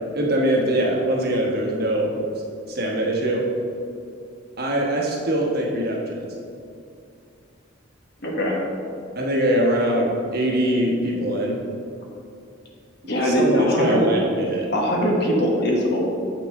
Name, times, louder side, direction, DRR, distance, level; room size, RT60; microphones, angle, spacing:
voice 1, 0.1-2.1 2.7-3.5 4.6-6.3 9.2-11.6 13.2-14.7, right 1 dB, 55° right, -1 dB, 1.1 m, -22 dB
voice 2, 8.2-8.6 13.1-14.0 14.7-16.0, equal, 55° left, -2 dB, 1.2 m, -21 dB
7.6 x 5.8 x 3.5 m, 2.5 s
head